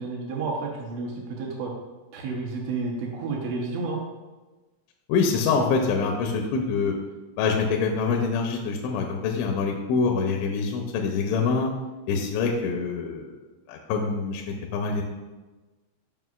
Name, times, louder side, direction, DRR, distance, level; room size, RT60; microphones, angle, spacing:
voice 1, 0.0-1.7 2.1-4.0, right 3 dB, 75° right, -2 dB, 2.9 m, -31 dB
voice 2, 5.1-6.9 7.4-11.7 12.1-13.3 13.7-14.4 14.7-15.0, left 5 dB, 85° left, 2 dB, 2.8 m, -25 dB
9.1 x 6.0 x 2.4 m, 1.2 s
omnidirectional pair, 5.7 m